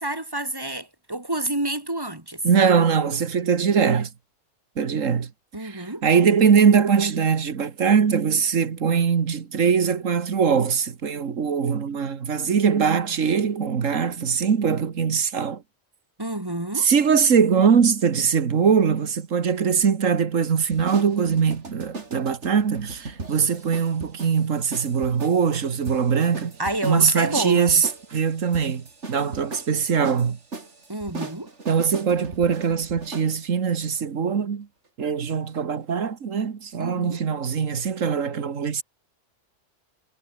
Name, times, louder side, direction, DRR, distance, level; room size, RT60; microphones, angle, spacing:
voice 1, 0.0-2.4 5.5-6.0 16.2-16.9 26.6-27.7 30.9-31.5 36.8-37.2, right 1 dB, 20° right, 2.4 m, -29 dB
voice 2, 2.4-4.1 4.8-5.3 5.6-15.6 16.8-26.5 26.8-30.4 31.7-34.7 35.0-38.8, right 6 dB, 80° right, 1.8 m, -22 dB
sound 1, 20.6-33.3, right 3 dB, 65° right, 3.3 m, -39 dB
omnidirectional pair, 1.3 m